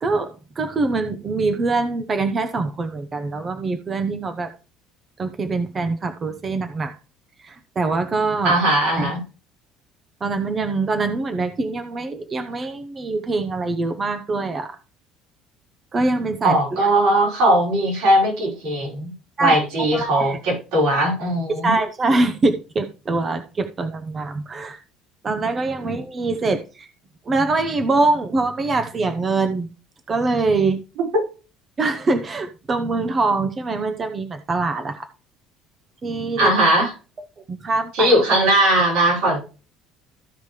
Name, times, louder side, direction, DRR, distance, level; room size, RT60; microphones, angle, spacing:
voice 1, 0.0-4.5 5.2-7.0 7.4-8.6 9.0-9.1 10.2-14.8 15.9-16.6 19.4-19.6 19.9-20.4 21.6-24.8 25.2-26.9 27.3-29.7 30.1-30.8 31.8-35.1 36.0-36.5 37.5-38.1, right 3 dB, 25° right, 0.7 m, -23 dB
voice 2, 8.4-9.2 16.4-19.1 19.4-21.8 36.4-36.9 37.9-39.4, right 1 dB, 80° right, 5.3 m, -19 dB
14.5 x 5.2 x 3.2 m
cardioid pair, 155°, 0 cm